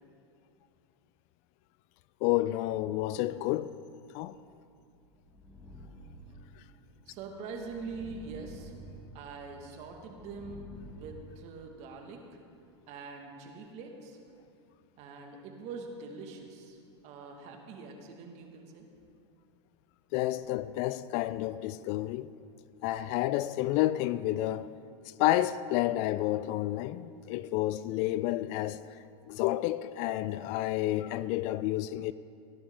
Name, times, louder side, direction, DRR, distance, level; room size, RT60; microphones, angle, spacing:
voice 1, 2.2-3.7 4.1-4.3 20.1-22.3 22.8-24.7 25.2-28.8 29.3-32.1, left 15 dB, 50° left, 0.4 m, -30 dB
sound 1, 4.6-11.1, right 1 dB, ahead, 2.6 m, -50 dB
voice 2, 7.1-8.7 9.1-10.7 10.9-12.4 12.9-14.2 15.0-16.8 17.0-18.8, right 4 dB, 45° right, 2.0 m, -44 dB
18.5 x 10.5 x 3.8 m
supercardioid pair, 120°, 15 cm